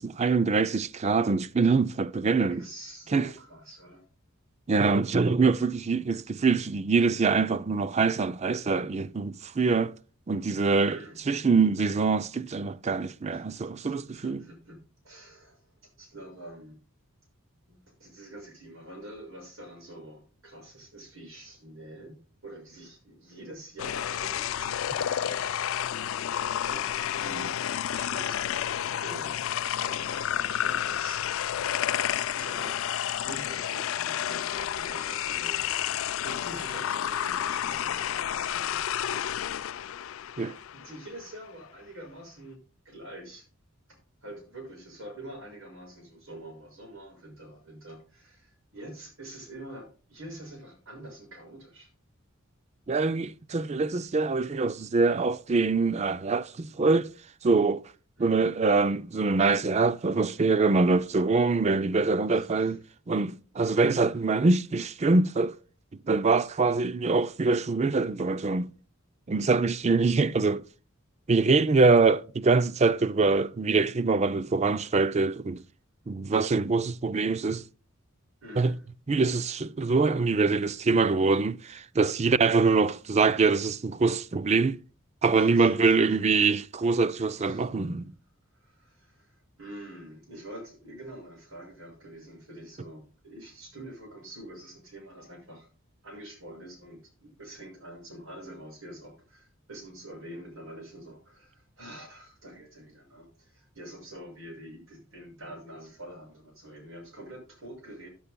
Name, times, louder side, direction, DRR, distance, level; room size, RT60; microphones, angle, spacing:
voice 1, 0.0-2.7 3.1-3.3 4.7-9.9 10.3-11.0 11.3-14.4 40.4-40.6 52.9-57.1 57.4-57.8 58.2-62.8 63.1-65.5 66.1-68.7 69.3-70.6 71.3-75.6 76.1-77.6 78.6-78.7 79.1-84.8 85.2-88.1, right 4 dB, 30° right, 0.4 m, -24 dB
voice 2, 2.5-4.1 10.8-11.2 13.3-14.8 15.0-16.8 17.7-25.6 26.6-31.5 32.4-32.8 33.1-40.1 40.7-42.6 42.8-43.5 43.9-51.9 58.2-58.5 62.3-62.8 63.8-64.2 78.4-78.9 85.4-86.2 87.4-87.7 88.5-95.7 96.0-108.1, right 1 dB, 75° right, 6.3 m, -46 dB
sound 1, 23.8-41.1, left 10 dB, 70° left, 0.4 m, -30 dB
15.5 x 10.0 x 2.2 m
head